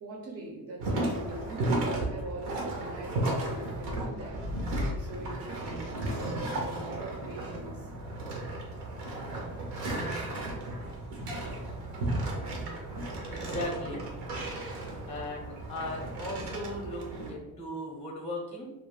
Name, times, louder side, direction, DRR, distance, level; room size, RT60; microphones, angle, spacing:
voice 1, 0.0-7.9 11.3-11.8, right 1 dB, 45° right, 0 dB, 0.5 m, -43 dB
sound 1, 0.8-17.3, right 1 dB, 90° right, 0.8 m, -34 dB
voice 2, 13.3-14.0 15.0-18.7, left 1 dB, 15° left, 0 dB, 0.5 m, -37 dB
2.4 x 2.1 x 3.1 m, 1.2 s
cardioid pair, 90°, 39 cm